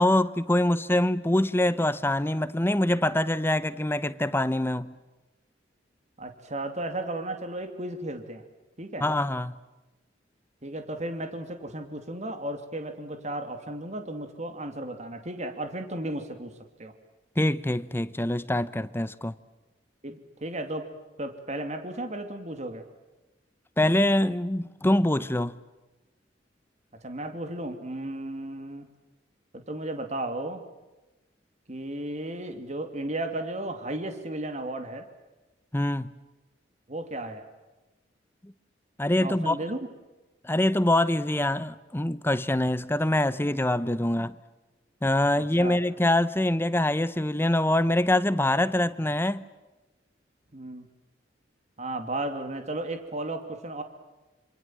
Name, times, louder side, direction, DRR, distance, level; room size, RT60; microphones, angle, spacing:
voice 1, 0.0-4.9 9.0-9.5 17.4-19.3 23.8-25.5 35.7-36.1 38.4-38.5 39.0-39.6 40.4-44.4 45.0-49.4, left 1 dB, 15° left, 0.9 m, -24 dB
voice 2, 6.2-8.4 8.8-9.1 10.6-16.9 20.0-20.9 21.2-22.8 27.0-28.9 29.5-30.6 31.7-35.1 36.9-37.4 39.2-39.8 45.4-45.8 50.5-50.9 51.8-53.8, right 1 dB, 40° right, 2.7 m, -34 dB
27.0 x 27.0 x 7.5 m
head